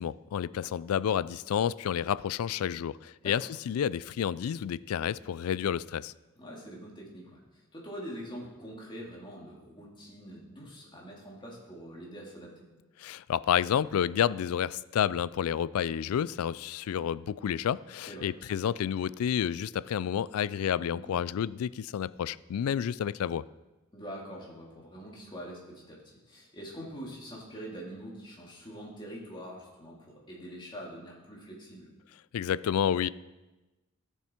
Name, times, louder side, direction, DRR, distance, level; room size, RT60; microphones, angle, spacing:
voice 1, 0.0-6.1 13.0-23.4 32.3-33.1, left 9 dB, 80° left, 0.3 m, -30 dB
voice 2, 6.4-12.7 18.1-18.3 20.9-21.2 23.9-31.9, equal, 20° left, 2.5 m, -44 dB
15.5 x 6.9 x 4.4 m
head